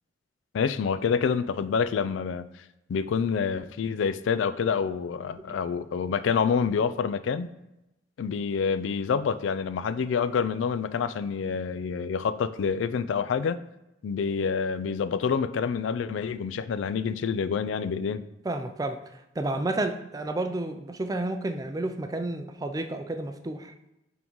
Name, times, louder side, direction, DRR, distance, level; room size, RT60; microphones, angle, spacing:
voice 1, 0.5-2.5 2.9-7.5 8.2-13.6 14.0-18.2, left 6 dB, 90° left, 13 dB, 0.3 m, -27 dB
voice 2, 18.4-23.7, right 2 dB, 20° right, 7 dB, 0.3 m, -31 dB
9.1 x 3.6 x 3.1 m, 0.90 s
head